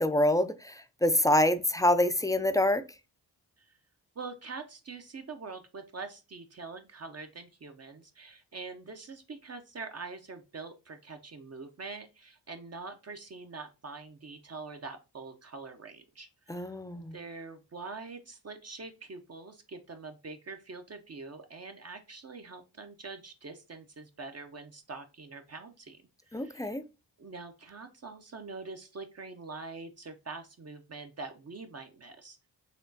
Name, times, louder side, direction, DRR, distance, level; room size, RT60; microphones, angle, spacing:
voice 1, 0.0-2.8 16.5-17.1 26.3-26.8, left 1 dB, 10° left, 0.3 m, -26 dB
voice 2, 4.2-26.0 26.3-26.8 27.2-32.4, right 4 dB, 35° right, 0.6 m, -44 dB
4.2 x 2.9 x 2.7 m
cardioid pair, 50°, 42 cm